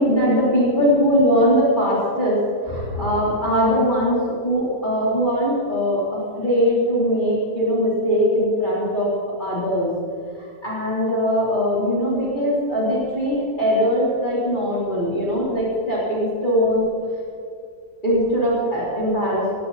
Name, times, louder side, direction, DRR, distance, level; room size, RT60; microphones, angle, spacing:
voice 1, 0.0-9.1 9.4-9.9 10.6-16.8 18.0-19.5, equal, 25° left, -7 dB, 4.0 m, -21 dB
18.5 x 16.5 x 4.2 m, 2.3 s
omnidirectional pair, 1.8 m